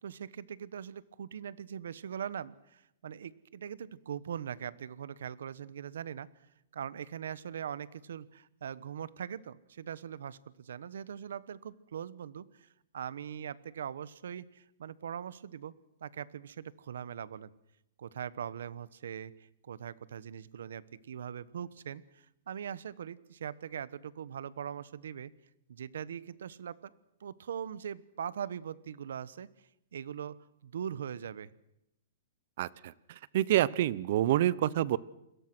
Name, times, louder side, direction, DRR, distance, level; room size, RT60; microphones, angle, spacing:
voice 1, 0.0-6.3 6.7-12.7 12.9-15.7 16.0-17.5 18.0-25.3 25.7-26.9 27.2-29.5 29.9-31.5, right 8 dB, 80° right, 18 dB, 1.2 m, -41 dB
voice 2, 32.6-35.0, right 13 dB, 50° right, 20 dB, 0.9 m, -28 dB
29.0 x 22.0 x 6.2 m, 0.84 s
hypercardioid pair, 160°, 0 cm